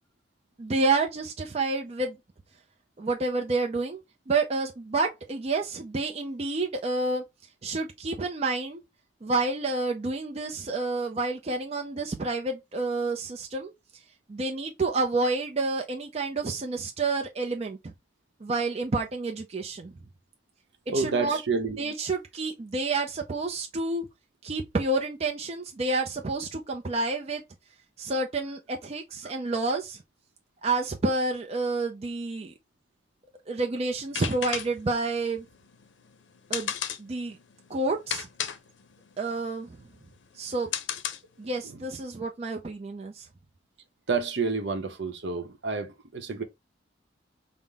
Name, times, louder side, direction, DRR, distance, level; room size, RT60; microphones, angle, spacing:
voice 1, 0.6-2.2 3.0-4.0 4.3-7.2 7.6-8.8 9.2-13.7 14.3-17.9 18.4-19.9 20.9-21.4 21.8-24.1 24.4-27.4 28.0-30.0 30.6-32.5 33.5-35.5 36.5-36.7 37.0-37.4 37.7-38.3 39.2-39.7 40.3-40.7 41.4-43.3, right 3 dB, 35° right, 0.5 m, -29 dB
voice 2, 20.9-21.8 41.6-41.8 44.1-46.4, right 4 dB, 65° right, 0.8 m, -29 dB
sound 1, 34.0-41.6, left 9 dB, 80° left, 0.6 m, -35 dB
5.5 x 2.1 x 3.4 m
head